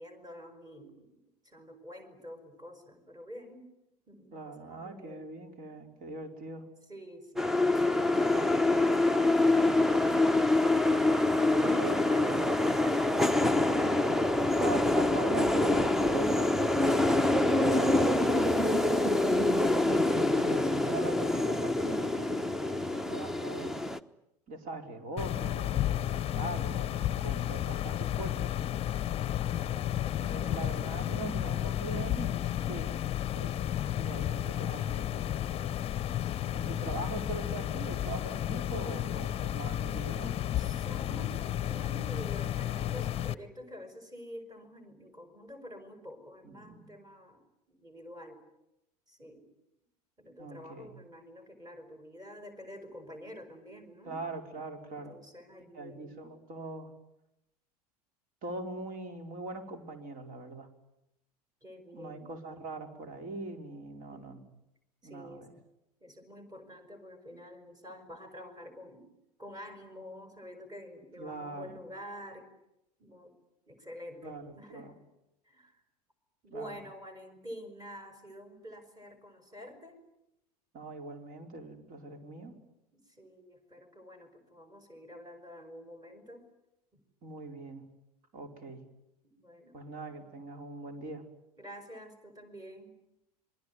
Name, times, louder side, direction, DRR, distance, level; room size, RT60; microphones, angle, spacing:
voice 1, 0.0-3.7 4.1-5.2 6.8-7.6 8.7-10.8 11.4-14.5 29.5-31.8 40.6-47.4 47.7-48.4 49.1-49.5 50.2-54.2 54.9-56.1 61.6-62.3 63.9-64.4 65.0-65.5 66.0-69.1 69.4-72.5 73.0-73.3 73.7-75.0 75.4-75.8 76.4-80.0 82.9-86.5 86.9-87.0 89.2-89.8 91.6-93.0, equal, 20° right, 8 dB, 5.7 m, -48 dB
voice 2, 4.3-6.7 7.5-8.4 11.6-12.5 14.5-18.3 20.3-23.8 24.5-28.5 30.2-33.0 33.4-33.6 34.0-35.3 36.5-40.4 46.4-46.9 50.4-51.0 54.0-55.2 55.7-56.9 58.4-60.7 61.9-64.4 65.0-65.5 71.2-71.8 74.2-74.9 76.5-76.8 80.7-82.6 87.2-87.9 88.3-88.8 89.7-91.3, right 3 dB, 45° right, 6 dB, 4.7 m, -42 dB
sound 1, 7.4-24.0, left 2 dB, ahead, 1.0 m, -26 dB
sound 2, 25.2-43.3, left 12 dB, 30° left, 1.0 m, -32 dB
27.0 x 21.5 x 9.6 m, 0.84 s
figure-of-eight pair, 85°, 20 cm